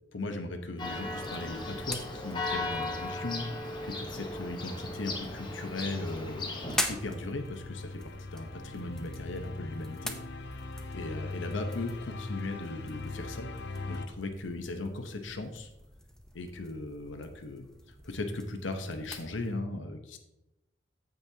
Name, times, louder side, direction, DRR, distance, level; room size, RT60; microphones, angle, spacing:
voice 1, 0.1-10.1 10.9-13.5 13.9-15.7 16.3-20.2, left 2 dB, 85° left, 6 dB, 0.9 m, -38 dB
Church bell, 0.8-6.8, left 2 dB, 25° left, 1.0 m, -37 dB
sound 1, 0.8-19.5, left 1 dB, 5° left, 0.6 m, -44 dB
sound 2, 1.2-14.1, left 3 dB, 65° left, 0.6 m, -43 dB
14.5 x 5.3 x 2.8 m, 0.92 s
head